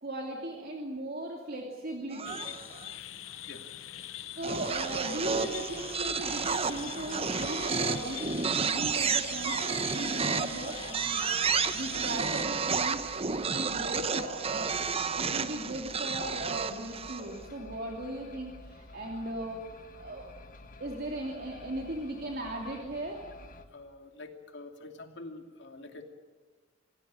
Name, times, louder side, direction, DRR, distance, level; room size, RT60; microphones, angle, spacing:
voice 1, 0.0-2.4 4.4-14.7 15.1-19.7 19.9-20.3 20.8-23.2, right 1 dB, 50° right, 0 dB, 2.9 m, -38 dB
sound 1, 2.1-2.9 4.4-17.4, right 5 dB, 30° right, 0.9 m, -31 dB
sound 2, 2.2-12.4, left 11 dB, 80° left, 0.9 m, -43 dB
sound 3, 4.4-23.6, left 2 dB, 45° left, 1.7 m, -51 dB
voice 2, 23.7-26.0, left 2 dB, 60° left, 5 dB, 2.7 m, -46 dB
26.5 x 17.0 x 8.8 m, 1.3 s
head